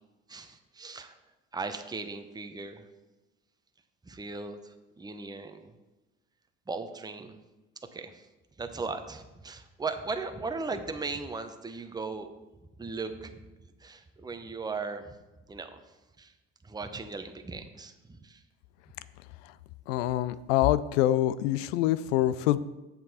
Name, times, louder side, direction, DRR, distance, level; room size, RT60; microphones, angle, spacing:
voice 1, 0.3-1.2 1.5-2.8 4.0-5.7 6.7-7.4 7.9-8.2 8.6-12.3 12.8-13.4 13.8-15.1 15.5-15.8 16.2-16.3 16.6-18.4, right 4 dB, 10° right, 7 dB, 0.8 m, -37 dB
voice 2, 19.9-22.6, left 14 dB, 75° left, 16 dB, 0.5 m, -25 dB
7.5 x 7.0 x 4.2 m, 1.1 s
hypercardioid pair, 70°, 38 cm